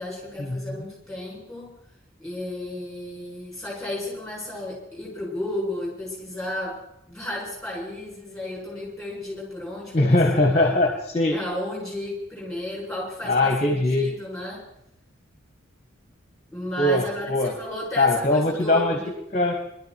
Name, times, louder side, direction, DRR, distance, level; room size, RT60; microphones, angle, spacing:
voice 1, 0.0-1.7 2.2-6.8 7.1-10.2 10.5-10.7 11.3-14.7 16.5-19.1, left 1 dB, 5° left, -5 dB, 7.3 m, -33 dB
voice 2, 9.9-11.4 13.3-14.1 16.8-17.5 18.0-19.0 19.3-19.5, left 2 dB, 30° left, 3 dB, 1.4 m, -21 dB
22.0 x 12.5 x 4.5 m, 0.82 s
head